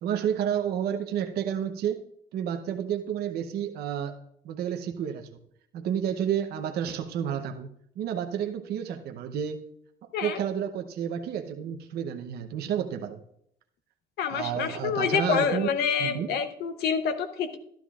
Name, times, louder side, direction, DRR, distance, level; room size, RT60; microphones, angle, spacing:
voice 1, 0.0-2.0 2.3-4.2 4.4-5.4 5.7-7.7 8.0-9.6 10.2-13.2 14.3-15.7 16.0-16.3, right 9 dB, 70° right, 5 dB, 0.8 m, -30 dB
voice 2, 14.2-17.6, left 6 dB, 75° left, 8 dB, 0.9 m, -27 dB
12.5 x 11.5 x 2.4 m, 0.70 s
cardioid pair, 110°, 17 cm